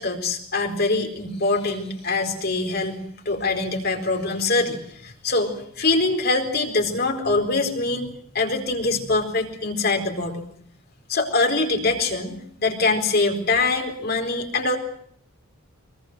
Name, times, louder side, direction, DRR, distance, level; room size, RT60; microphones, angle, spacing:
voice 1, 0.0-10.4 11.1-14.8, left 3 dB, 45° left, 4 dB, 4.4 m, -24 dB
24.0 x 23.0 x 7.8 m, 0.64 s
head